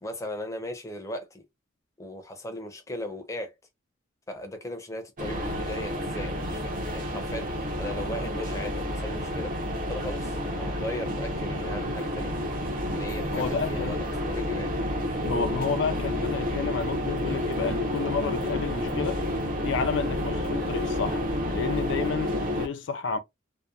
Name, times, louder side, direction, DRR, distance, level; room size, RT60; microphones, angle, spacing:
voice 1, 0.0-1.4 2.0-3.5 4.3-9.5 9.9-12.3 12.9-14.7, left 1 dB, 15° left, 0.5 m, -37 dB
sound 1, 5.2-22.7, left 1 dB, 45° right, 0.7 m, -30 dB
voice 2, 13.3-14.0 15.2-19.2 19.6-21.2 21.5-23.2, left 5 dB, 65° left, 0.4 m, -30 dB
2.8 x 2.1 x 2.3 m
head